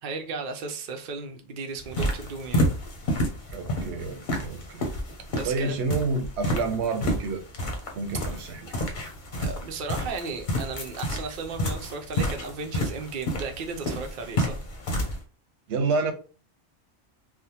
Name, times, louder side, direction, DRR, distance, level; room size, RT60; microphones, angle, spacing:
voice 1, 0.0-2.7 5.3-5.7 9.4-14.6 14.8-15.0, right 4 dB, 55° right, 0.7 m, -35 dB
sound 1, 1.8-15.2, equal, 50° left, 0.8 m, -30 dB
voice 2, 3.5-4.8 5.4-7.4 7.9-8.7 15.7-16.1, right 3 dB, 85° right, 0.9 m, -29 dB
3.3 x 2.1 x 2.8 m
omnidirectional pair, 1.1 m